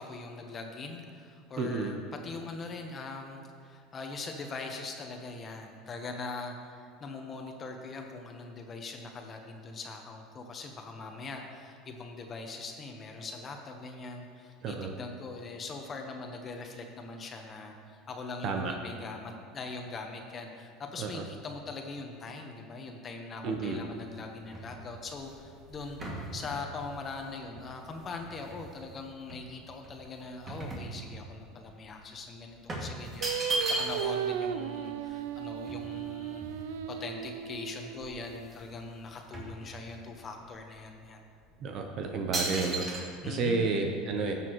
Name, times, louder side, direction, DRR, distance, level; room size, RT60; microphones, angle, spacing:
voice 1, 0.0-36.4 36.9-41.2 43.2-43.8, left 3 dB, 30° left, 3 dB, 1.1 m, -41 dB
voice 2, 1.6-1.9 14.6-14.9 18.4-18.7 21.0-21.2 23.4-23.8 41.6-44.3, right 4 dB, 50° right, 4 dB, 0.9 m, -31 dB
sound 1, 23.9-28.9 29.3-31.5 31.8-32.0 32.7-34.3 34.6-34.7 34.9-37.0 37.6-37.7 37.9-38.7 39.0-40.2 40.8-40.9 41.5-41.8 42.3-43.0, right 2 dB, 30° right, 2.2 m, -37 dB
Singing, 33.2-38.5, right 9 dB, 80° right, 0.4 m, -36 dB
14.5 x 6.9 x 3.1 m, 2.3 s
supercardioid pair, 105°, 0 cm